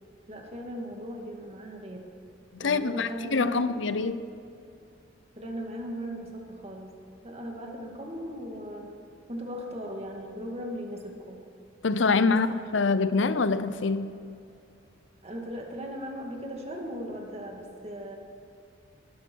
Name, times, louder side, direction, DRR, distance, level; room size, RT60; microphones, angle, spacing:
voice 1, 0.3-2.1 2.6-3.7 5.4-6.9 7.2-8.9 9.3-11.4 12.3-12.4 15.2-18.2, equal, 35° right, 2.1 m, -38 dB
voice 2, 2.5-4.3 11.8-14.1, left 4 dB, 70° left, 0.7 m, -25 dB
20.0 x 13.0 x 4.6 m
head